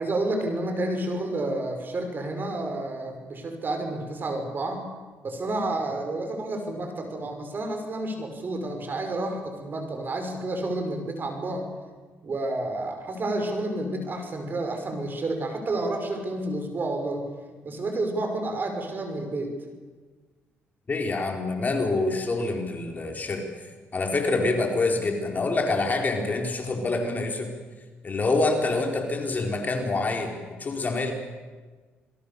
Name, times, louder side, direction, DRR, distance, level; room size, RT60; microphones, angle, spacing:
voice 1, 0.0-4.9 5.2-11.7 12.2-17.2 17.6-19.5, right 2 dB, 45° right, 5 dB, 6.0 m, -30 dB
voice 2, 20.9-23.4 23.9-27.5 28.0-31.1, left 3 dB, 35° left, 3 dB, 4.6 m, -26 dB
27.5 x 22.0 x 7.1 m, 1.4 s
cardioid pair, 75°, 5 cm